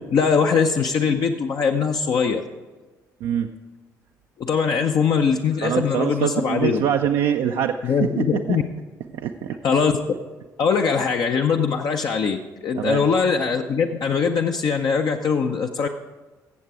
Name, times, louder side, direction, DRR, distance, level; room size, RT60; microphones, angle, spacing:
voice 1, 0.1-2.4 4.4-6.8 7.8-8.6 9.6-10.0 10.6-15.9, left 6 dB, 45° left, 3 dB, 0.6 m, -21 dB
voice 2, 5.6-8.6 9.1-9.6 12.8-13.1, right 9 dB, 55° right, 3 dB, 0.5 m, -24 dB
15.5 x 7.3 x 4.8 m, 1.2 s
figure-of-eight pair, 45°, 10 cm